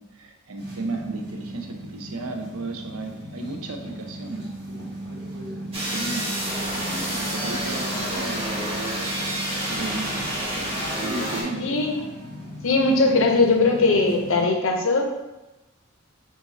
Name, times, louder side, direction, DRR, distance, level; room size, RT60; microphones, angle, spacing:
voice 1, 0.0-4.5 5.6-6.4 6.7-8.6 9.7-10.2 10.9-11.7, right 3 dB, 90° right, 4 dB, 0.6 m, -34 dB
sound 1, 0.5-14.4, right 1 dB, 50° right, 1.4 m, -36 dB
sound 2, 5.7-11.4, right 1 dB, 25° right, 0.8 m, -29 dB
voice 2, 11.6-12.0 12.6-15.2, left 3 dB, 70° left, 3 dB, 0.6 m, -20 dB
4.0 x 2.6 x 3.9 m, 1.0 s
head